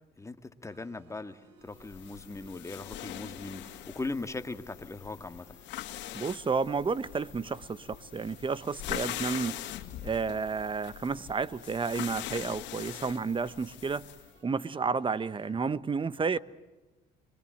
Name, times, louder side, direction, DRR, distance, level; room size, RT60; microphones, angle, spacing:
voice 1, 0.2-5.5, left 3 dB, 15° left, 1.9 m, -39 dB
sound 1, 0.7-15.5, right 4 dB, 75° right, 7.8 m, -61 dB
sound 2, 1.8-14.3, left 14 dB, 80° left, 2.2 m, -42 dB
voice 2, 6.1-9.6 10.0-14.0 14.4-16.4, right 5 dB, 30° right, 1.1 m, -31 dB
25.0 x 24.0 x 7.9 m
supercardioid pair, 80°, 18 cm